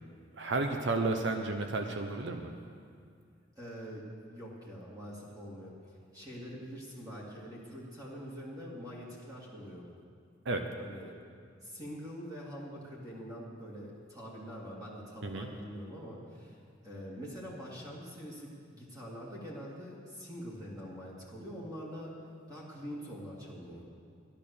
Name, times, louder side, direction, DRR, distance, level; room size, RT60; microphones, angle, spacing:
voice 1, 0.4-2.5 10.4-10.6 15.2-15.5, right 3 dB, 65° right, 5 dB, 0.9 m, -32 dB
voice 2, 3.5-9.9 10.8-11.1 11.6-16.6 16.8-22.1 22.5-23.8, equal, 20° right, -5 dB, 2.4 m, -44 dB
13.0 x 11.0 x 6.8 m, 2.2 s
head